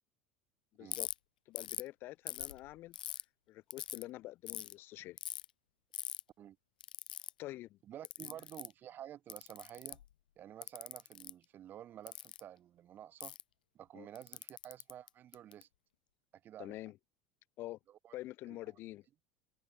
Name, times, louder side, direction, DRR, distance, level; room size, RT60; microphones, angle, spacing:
voice 1, 0.7-1.1 1.5-2.9 3.5-5.2 7.4-7.8 8.2-8.3 13.9-14.1 16.6-17.0 17.6-17.8 18.1-19.0, left 16 dB, 55° left, 2.9 m, -46 dB
Ratchet pawl, 0.9-1.1 1.6-1.9 2.3-3.2 3.7-4.0 4.5-4.7 5.2-5.4 5.9-6.2 6.8-7.3 8.0-8.7 9.3-10.1 10.6-11.3 12.1-12.4 13.2-13.4 14.1-15.6, left 11 dB, 85° left, 1.0 m, -42 dB
voice 2, 7.8-10.0 10.4-13.4 13.7-15.7 16.4-16.8 17.9-18.2 18.5-18.6, right 11 dB, 45° right, 3.7 m, -51 dB
hypercardioid pair, 80°, 5 cm